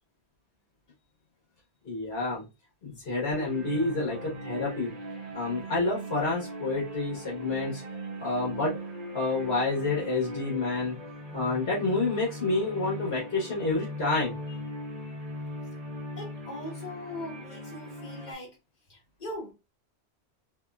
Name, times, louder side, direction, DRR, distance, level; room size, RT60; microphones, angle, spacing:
voice 1, 1.8-2.4 2.8-4.9 5.3-7.8 8.2-8.7 9.1-11.0 11.3-14.6, left 3 dB, 65° left, 1.4 m, -29 dB
sound 1, 3.3-18.3, equal, 35° right, 1.2 m, -40 dB
voice 2, 16.2-18.6 18.9-19.5, left 1 dB, 40° left, 1.6 m, -40 dB
3.5 x 3.0 x 2.4 m
omnidirectional pair, 1.1 m